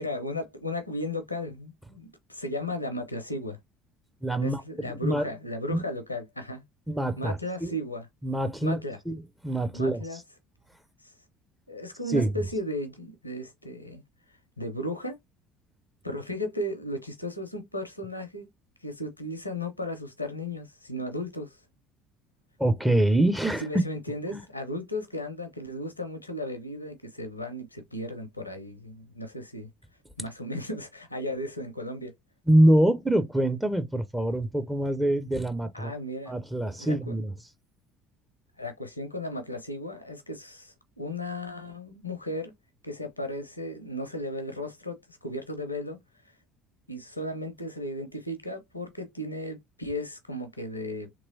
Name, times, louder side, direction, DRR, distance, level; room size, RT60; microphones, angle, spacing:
voice 1, 0.0-3.6 4.4-6.6 7.2-8.1 8.6-9.0 9.7-10.2 11.0-11.1 11.7-14.0 14.6-15.2 16.0-18.5 18.8-21.6 23.6-29.7 30.2-32.1 35.7-37.2 38.6-42.5 42.8-46.0 46.9-51.1, left 1 dB, 90° left, 0.6 m, -35 dB
voice 2, 4.2-5.2 5.7-5.8 6.9-7.7 8.2-8.8 9.1-9.2 9.4-10.2 12.1-12.3 22.6-23.6 24.3-24.4 32.5-35.9 36.3-37.3, right 1 dB, 5° right, 0.5 m, -25 dB
3.0 x 2.9 x 2.6 m
figure-of-eight pair, 60°, 0 cm